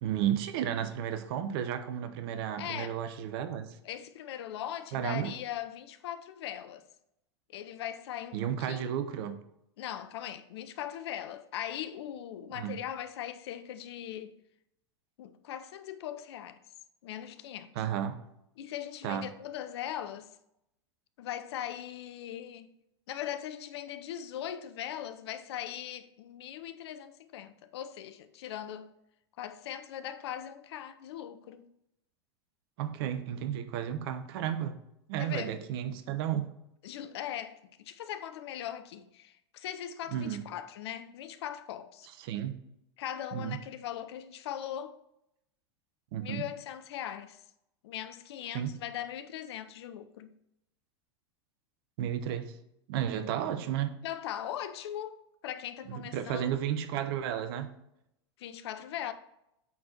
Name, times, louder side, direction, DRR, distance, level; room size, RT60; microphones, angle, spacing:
voice 1, 0.0-3.8 4.9-5.3 8.3-9.4 12.5-12.8 17.8-18.2 19.0-19.3 32.8-34.8 35.1-36.5 40.1-40.4 42.2-42.6 43.3-43.6 46.1-46.5 48.5-48.7 52.0-52.6 52.9-54.0 55.9-57.7, right 10 dB, 60° right, 0.9 m, -33 dB
voice 2, 2.6-3.0 3.8-6.9 7.5-8.9 9.8-14.4 15.2-16.6 17.0-17.7 18.6-20.3 21.2-22.7 23.1-28.9 29.4-31.7 35.2-35.6 36.8-42.1 43.0-45.0 46.2-47.4 47.8-50.3 54.0-55.2 55.4-56.6 58.4-59.1, left 11 dB, 65° left, 0.7 m, -40 dB
8.5 x 4.3 x 4.2 m
hypercardioid pair, 90°, 15 cm